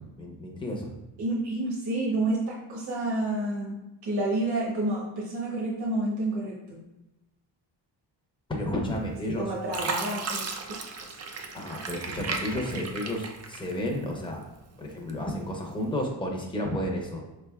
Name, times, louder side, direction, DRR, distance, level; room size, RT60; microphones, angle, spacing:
voice 1, 0.2-0.9 8.5-9.5 9.8-9.9 11.5-14.4 14.8-17.2, left 1 dB, 10° left, 0 dB, 0.7 m, -32 dB
voice 2, 1.2-6.8 9.3-10.8, right 2 dB, 50° right, -4 dB, 1.0 m, -29 dB
Fill (with liquid), 9.0-9.3 9.7-14.1 14.5-15.4 15.9-16.1, right 4 dB, 35° right, 0.4 m, -35 dB
3.6 x 3.5 x 2.3 m, 0.96 s
cardioid pair, 80°, 48 cm